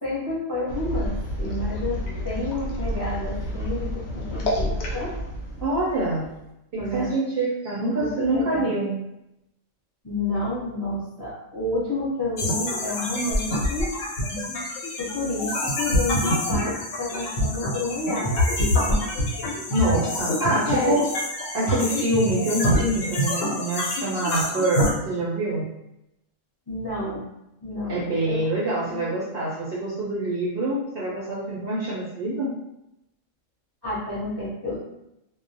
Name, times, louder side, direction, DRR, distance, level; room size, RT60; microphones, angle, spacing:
voice 1, 0.0-2.0 2.2-5.1 6.8-7.2 8.0-8.7 10.0-13.9 15.0-16.7 17.0-18.3 20.6-20.9 26.7-27.3 27.6-28.4 28.8-29.0 33.8-34.8, left 2 dB, 25° left, -9 dB, 0.7 m, -29 dB
sound 1, 0.7-6.5, left 1 dB, 65° left, 0.8 m, -30 dB
voice 2, 5.6-6.3 6.7-9.0 19.7-21.0 21.5-25.7 27.9-32.5, right 1 dB, 60° right, -7 dB, 0.6 m, -25 dB
sound 2, 12.4-24.9, left 1 dB, 90° left, 1.0 m, -26 dB
2.3 x 2.1 x 2.6 m, 0.86 s
omnidirectional pair, 1.3 m